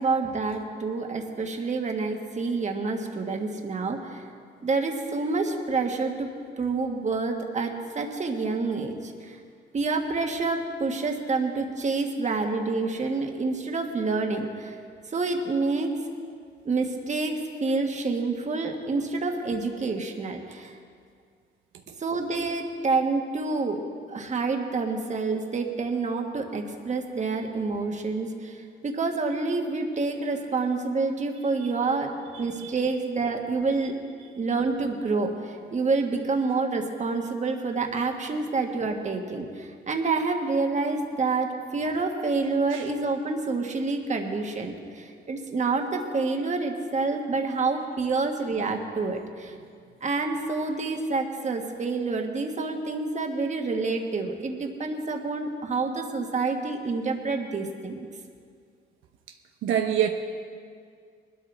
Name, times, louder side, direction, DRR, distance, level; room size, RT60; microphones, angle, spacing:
voice 1, 0.0-4.2 4.6-9.4 9.7-14.8 15.1-15.9 16.6-20.8 22.0-23.8 24.1-34.0 34.4-49.5 50.0-58.0, right 3 dB, 35° right, 3 dB, 1.6 m, -28 dB
voice 2, 32.3-32.7 42.7-42.9 59.6-60.1, right 10 dB, 80° right, 5 dB, 0.7 m, -26 dB
20.5 x 12.5 x 3.4 m, 2.2 s
cardioid pair, 90°, 20 cm